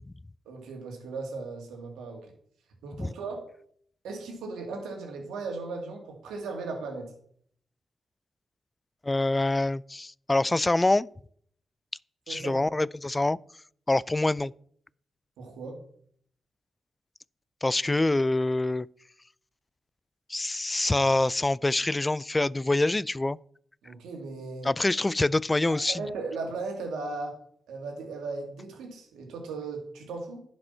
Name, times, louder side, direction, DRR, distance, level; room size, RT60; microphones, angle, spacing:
voice 1, 0.5-2.3 2.8-3.5 4.0-7.1 12.3-12.7 15.4-15.8 23.8-24.7 25.7-27.4 27.7-30.4, right 3 dB, 90° right, 2.2 m, -37 dB
voice 2, 9.0-11.1 12.3-13.4 13.9-14.5 17.6-18.9 20.3-23.4 24.6-26.0, left 2 dB, 20° left, 0.3 m, -25 dB
10.5 x 5.3 x 5.6 m
supercardioid pair, 55°, 0 cm